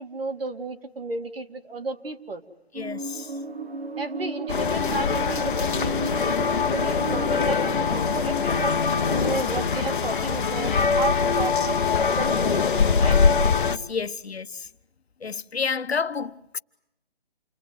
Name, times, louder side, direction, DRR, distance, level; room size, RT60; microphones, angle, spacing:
voice 1, 0.0-2.4 4.0-8.8 9.1-11.8 12.2-13.2, right 3 dB, 65° right, 3.0 m, -33 dB
voice 2, 2.7-3.4 6.5-6.6 13.6-14.7 15.2-16.6, left 5 dB, 80° left, 1.3 m, -30 dB
sound 1, 2.7-10.9, right 3 dB, 85° right, 5.9 m, -35 dB
sound 2, 4.5-13.8, left 5 dB, 55° left, 1.2 m, -23 dB
29.5 x 21.0 x 9.3 m
figure-of-eight pair, 155°, 31 cm